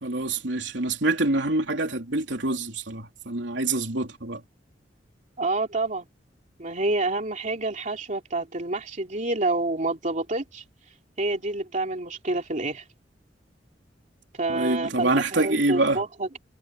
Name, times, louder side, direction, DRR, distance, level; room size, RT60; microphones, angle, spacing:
voice 1, 0.0-4.4 14.5-16.0, right 2 dB, 85° right, 3.4 m, -26 dB
voice 2, 5.4-6.1 6.6-10.6 11.2-12.8 14.4-16.4, right 2 dB, 45° right, 2.9 m, -28 dB
head